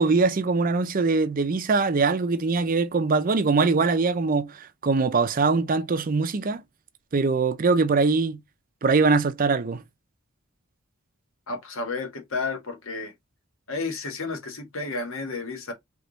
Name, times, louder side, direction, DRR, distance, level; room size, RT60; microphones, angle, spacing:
voice 1, 0.0-6.6 7.1-8.4 8.8-9.8, right 4 dB, 40° right, 0.5 m, -22 dB
voice 2, 11.5-13.1 13.7-15.7, left 3 dB, 75° left, 1.6 m, -32 dB
3.5 x 3.4 x 3.9 m
head